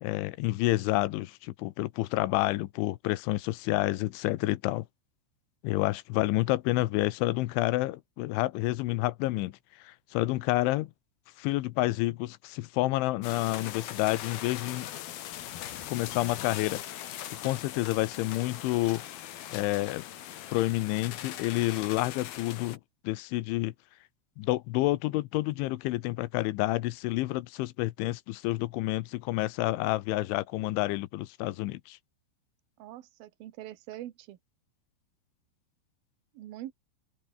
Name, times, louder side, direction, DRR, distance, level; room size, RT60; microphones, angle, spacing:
voice 1, 0.0-4.9 5.6-9.5 9.8-10.9 11.4-14.9 15.9-16.8 17.4-19.0 19.5-20.0 20.5-23.7 24.4-32.0, left 18 dB, 80° left, 3.2 m, -29 dB
sound 1, 13.2-22.8, left 12 dB, 60° left, 2.9 m, -40 dB
voice 2, 32.8-34.4 36.3-36.7, right 14 dB, 65° right, 2.7 m, -43 dB
omnidirectional pair, 5.7 m